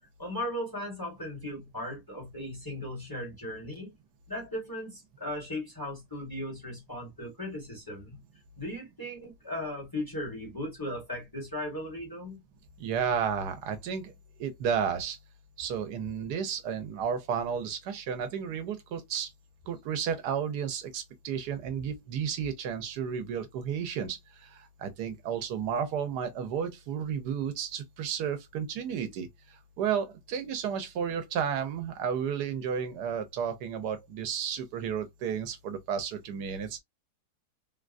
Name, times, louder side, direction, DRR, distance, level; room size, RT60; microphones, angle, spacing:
voice 1, 0.2-3.9 4.3-8.2 8.6-12.4, left 1 dB, 15° left, 1.3 m, -37 dB
voice 2, 12.8-14.1 14.4-15.2 15.6-19.3 19.7-36.8, right 7 dB, 85° right, 1.3 m, -32 dB
3.7 x 2.3 x 2.5 m
omnidirectional pair, 1.7 m